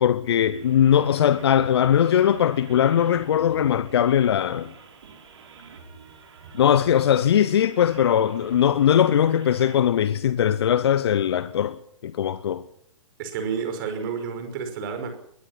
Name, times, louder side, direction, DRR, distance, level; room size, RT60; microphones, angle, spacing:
voice 1, 0.0-4.7 6.5-12.6, left 9 dB, 50° left, 1.0 m, -20 dB
sound 1, 0.5-9.8, right 5 dB, 55° right, 5.2 m, -48 dB
voice 2, 13.2-15.2, right 6 dB, 40° right, 5.5 m, -30 dB
22.0 x 20.0 x 5.9 m
figure-of-eight pair, 120°, 17 cm